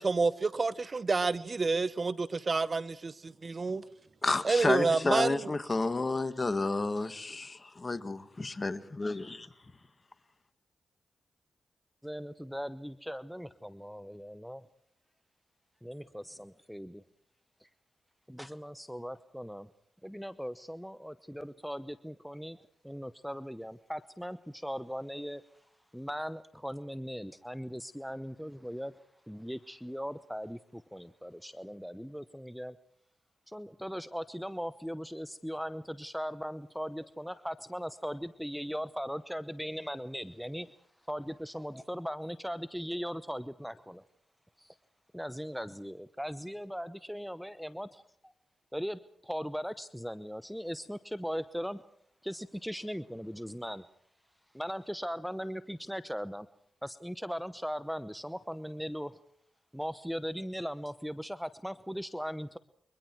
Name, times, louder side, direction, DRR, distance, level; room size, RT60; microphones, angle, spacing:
voice 1, 0.0-3.8 4.4-5.5, right 4 dB, 45° right, 0.9 m, -29 dB
voice 2, 4.2-9.5, left 3 dB, 40° left, 1.8 m, -31 dB
voice 3, 12.0-14.7 15.8-17.0 17.6-17.7 18.3-19.7 20.0-22.6 22.8-25.4 25.9-29.0 29.3-32.8 33.5-40.7 41.1-44.0 44.6-44.8 45.1-48.3 48.7-51.8 52.2-53.8 54.5-56.5 56.8-59.2 59.7-62.6, equal, ahead, 0.9 m, -39 dB
29.5 x 23.5 x 4.7 m
supercardioid pair, 40°, 0 cm